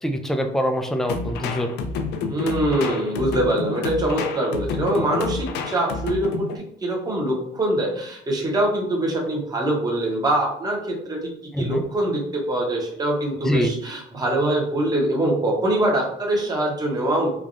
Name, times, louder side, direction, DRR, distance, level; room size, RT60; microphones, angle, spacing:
voice 1, 0.0-1.9 11.5-11.9 13.4-13.7, equal, ahead, 6 dB, 0.3 m, -24 dB
sound 1, 1.1-6.6, left 4 dB, 80° left, 0.4 m, -29 dB
voice 2, 2.3-11.3 11.6-17.3, right 1 dB, 20° right, -1 dB, 0.8 m, -23 dB
3.3 x 2.3 x 2.5 m, 0.75 s
cardioid pair, 110°, 17 cm